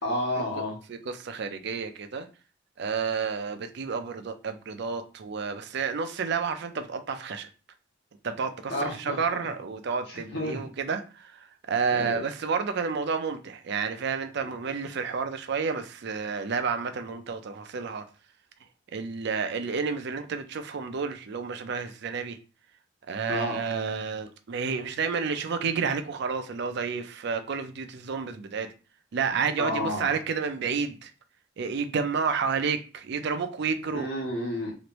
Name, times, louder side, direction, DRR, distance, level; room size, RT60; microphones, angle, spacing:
voice 1, 0.0-0.7 8.7-9.2 10.1-10.7 11.9-12.2 23.3-23.6 29.6-30.1 33.9-34.7, left 1 dB, 60° left, 1.2 m, -30 dB
voice 2, 0.9-2.3 2.8-7.5 8.2-18.0 18.9-22.4 23.1-28.7 29.1-31.1 31.6-34.1, right 5 dB, 60° right, 0.4 m, -30 dB
3.1 x 2.5 x 3.0 m
head